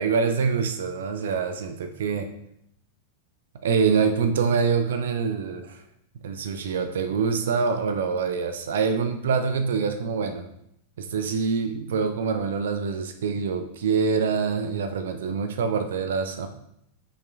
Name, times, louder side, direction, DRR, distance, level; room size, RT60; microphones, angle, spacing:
voice 1, 0.0-2.3 3.6-5.8 6.2-10.5 11.0-16.5, right 5 dB, 60° right, 8 dB, 0.6 m, -25 dB
9.9 x 5.9 x 2.3 m, 0.76 s
figure-of-eight pair, 90°, 0 cm